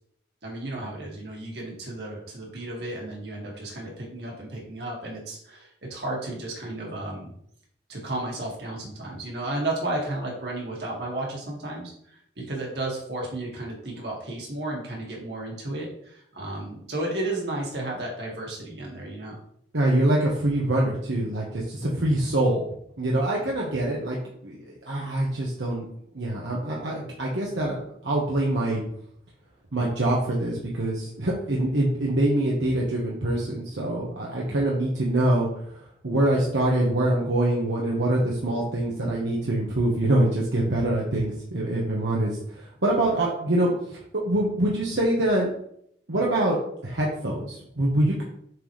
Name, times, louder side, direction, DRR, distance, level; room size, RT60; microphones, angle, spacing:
voice 1, 0.4-7.3 7.9-11.9 12.4-19.4, right 2 dB, 65° right, -2 dB, 1.9 m, -33 dB
voice 2, 19.7-22.7 23.0-25.9 26.1-28.8 29.7-45.5 46.1-48.2, right 1 dB, 85° right, -4 dB, 1.1 m, -25 dB
7.5 x 4.0 x 3.2 m, 0.69 s
head